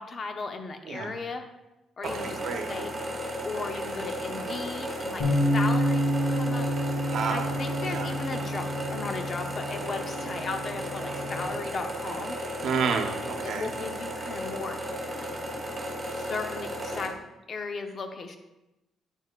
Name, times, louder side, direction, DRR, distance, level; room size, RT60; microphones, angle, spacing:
voice 1, 0.0-1.5 2.0-2.9 3.4-6.7 7.0-12.4 13.4-14.8 15.2-15.4 16.2-17.2 17.5-18.4, left 4 dB, 45° left, 6 dB, 0.8 m, -36 dB
sound 1, 2.0-17.1, equal, 25° right, 2.1 m, -35 dB
voice 2, 2.0-2.7 7.0-7.6 7.8-8.1 12.6-13.7, right 6 dB, 75° right, 5 dB, 0.9 m, -30 dB
Bass guitar, 5.2-11.4, equal, 90° left, 2.1 m, -29 dB
8.9 x 6.4 x 2.4 m, 0.97 s
cardioid pair, 90°, 0 cm